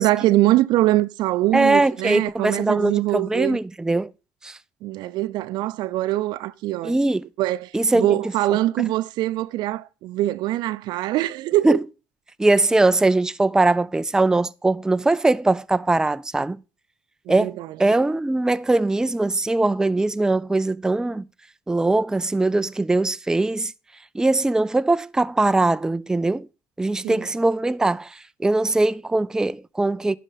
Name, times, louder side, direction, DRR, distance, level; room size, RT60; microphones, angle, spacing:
voice 1, 0.0-3.6 4.8-7.0 7.4-11.8 17.3-17.8 27.0-27.3, right 16 dB, 70° right, 0.5 m, -23 dB
voice 2, 1.5-4.1 4.4-4.6 6.8-7.3 7.7-8.2 8.8-8.9 11.6-11.8 12.4-16.6 17.3-21.3 21.7-23.7 24.1-26.5 26.8-30.2, right 2 dB, 10° right, 0.4 m, -21 dB
11.0 x 5.1 x 5.7 m
hypercardioid pair, 65°, 8 cm